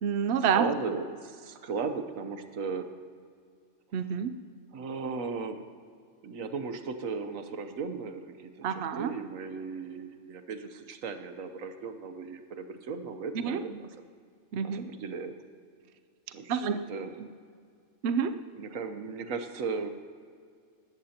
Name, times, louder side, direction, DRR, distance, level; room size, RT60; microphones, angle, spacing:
voice 1, 0.0-0.7 3.9-4.3 8.6-9.1 13.3-13.6 14.5-14.9 16.5-16.8 17.2-17.3 18.0-18.4, right 7 dB, 60° right, 9 dB, 0.9 m, -28 dB
voice 2, 0.5-2.9 4.7-5.6 6.2-13.9 14.6-15.3 16.3-16.6 16.9-17.1 18.5-19.9, right 5 dB, 85° right, 8 dB, 1.3 m, -36 dB
19.5 x 15.0 x 2.9 m, 2.1 s
omnidirectional pair, 1.4 m